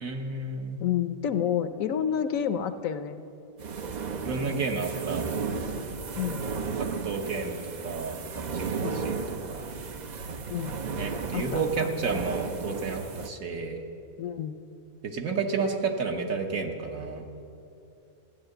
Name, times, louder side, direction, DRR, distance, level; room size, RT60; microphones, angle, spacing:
voice 1, 0.0-0.8 4.2-5.2 6.4-6.5 6.8-9.2 9.5-9.7 10.9-13.8 15.0-17.2, right 4 dB, 70° right, 3 dB, 1.6 m, -31 dB
voice 2, 0.8-3.2 6.2-6.4 8.8-9.0 10.5-10.8 11.3-11.9 14.2-14.6, left 9 dB, 70° left, 10 dB, 1.0 m, -29 dB
sound 1, 3.6-13.3, right 5 dB, 55° right, 0.5 m, -34 dB
15.0 x 9.9 x 7.8 m, 2.8 s
omnidirectional pair, 1.5 m